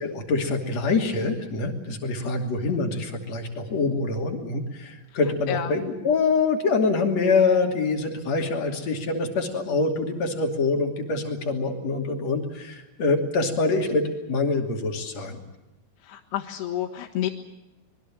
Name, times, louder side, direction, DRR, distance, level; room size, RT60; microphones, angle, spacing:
voice 1, 0.0-15.4, left 3 dB, 40° left, 2 dB, 3.4 m, -25 dB
voice 2, 16.0-17.3, left 11 dB, 70° left, -2 dB, 3.3 m, -29 dB
25.5 x 22.0 x 7.4 m, 1.0 s
omnidirectional pair, 5.3 m